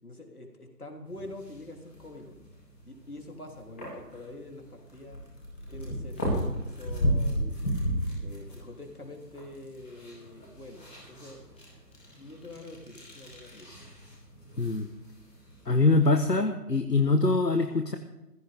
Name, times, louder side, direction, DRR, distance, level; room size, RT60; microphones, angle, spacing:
voice 1, 0.0-2.4 2.9-5.2 5.7-7.6 8.2-11.6 12.2-13.7, left 2 dB, 60° left, 2 dB, 3.6 m, -45 dB
sound 1, 1.0-16.4, equal, 5° left, 2.8 m, -36 dB
voice 2, 14.6-14.9 15.7-18.0, left 3 dB, 80° left, 6 dB, 1.4 m, -23 dB
21.0 x 16.0 x 3.7 m, 0.96 s
figure-of-eight pair, 165°, 49 cm